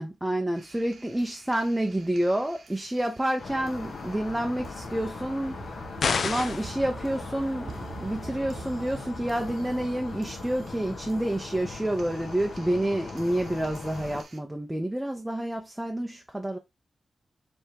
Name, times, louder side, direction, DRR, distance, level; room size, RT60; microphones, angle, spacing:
voice 1, 0.0-5.7 6.2-16.6, right 1 dB, 10° right, 0.6 m, -29 dB
sound 1, 0.6-14.4, right 4 dB, 55° right, 0.9 m, -47 dB
sound 2, 3.4-14.2, left 4 dB, 80° left, 1.4 m, -40 dB
sound 3, 6.0-6.7, left 5 dB, 65° left, 0.5 m, -27 dB
4.8 x 3.5 x 2.7 m
wide cardioid pair, 175°, 0 cm